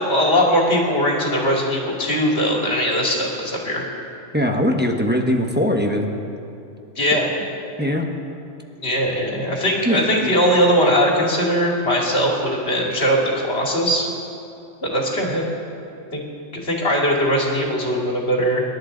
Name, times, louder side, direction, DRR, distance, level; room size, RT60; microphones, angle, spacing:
voice 1, 0.0-3.9 7.0-7.2 8.8-14.1 14.9-15.5 16.1-16.2 16.6-18.6, equal, 55° left, -2 dB, 2.7 m, -20 dB
voice 2, 4.3-6.1 7.8-8.1 9.8-10.3, equal, 10° right, 1 dB, 1.1 m, -21 dB
25.5 x 11.5 x 3.9 m, 2.7 s
omnidirectional pair, 1.3 m